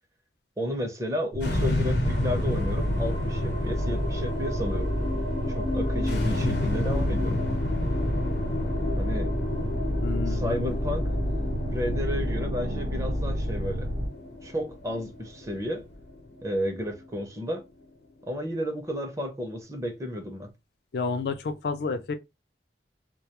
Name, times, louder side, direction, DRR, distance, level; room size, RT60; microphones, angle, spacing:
voice 1, 0.6-4.9 5.5-7.4 8.9-9.3 10.3-11.0 11.7-13.9 14.4-15.8 16.4-17.6 18.2-20.5, left 1 dB, 20° right, 0.5 m, -32 dB
sound 1, 1.3-14.1, equal, 75° right, 0.6 m, -29 dB
sound 2, 1.4-17.8, left 2 dB, 85° left, 0.8 m, -31 dB
sound 3, 2.0-13.8, equal, 45° right, 0.8 m, -47 dB
voice 2, 10.0-10.4 20.9-22.2, left 4 dB, 65° left, 0.3 m, -30 dB
2.2 x 2.2 x 2.9 m
head